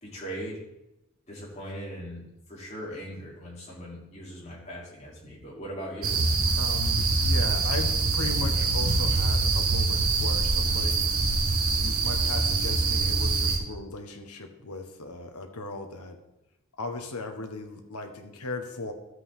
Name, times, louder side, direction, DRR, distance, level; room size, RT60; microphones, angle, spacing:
voice 1, 0.0-0.6 1.3-6.2, equal, 30° left, -5 dB, 3.5 m, -39 dB
sound 1, 6.0-13.6, right 3 dB, 75° right, 1.4 m, -24 dB
voice 2, 6.6-11.1 11.8-16.2 16.8-18.9, left 2 dB, 85° left, 5 dB, 1.4 m, -37 dB
13.0 x 7.9 x 3.8 m, 0.91 s
head